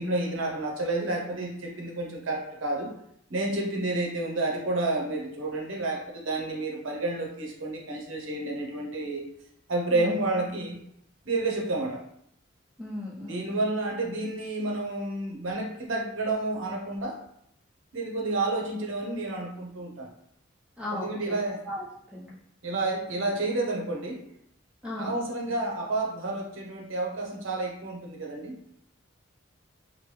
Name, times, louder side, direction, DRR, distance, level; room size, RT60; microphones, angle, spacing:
voice 1, 0.0-2.9 3.3-9.3 9.7-10.8 11.3-12.0 13.2-17.2 17.9-20.1 20.9-21.6 22.6-24.2 24.9-28.5, right 2 dB, 75° right, 0 dB, 0.7 m, -30 dB
voice 2, 12.8-13.6 20.8-21.4 21.7-21.8 22.1-22.3 24.8-25.2, left 1 dB, 5° right, -7 dB, 0.8 m, -36 dB
3.0 x 2.2 x 3.1 m, 0.73 s
head